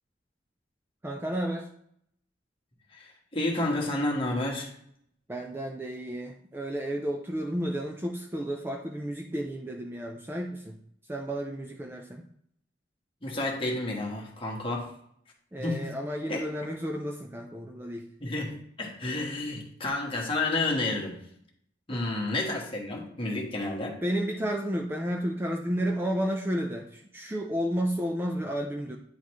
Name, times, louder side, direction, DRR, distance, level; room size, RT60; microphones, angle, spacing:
voice 1, 1.0-1.7 5.3-10.8 11.1-12.2 15.5-18.1 21.9-22.1 24.0-29.0, equal, 10° right, 2 dB, 0.4 m, -32 dB
voice 2, 2.9-4.7 13.2-14.9 15.6-15.8 16.3-16.4 18.2-21.2 21.9-24.0, left 2 dB, 30° left, -1 dB, 1.4 m, -30 dB
9.5 x 4.0 x 3.1 m, 0.68 s
head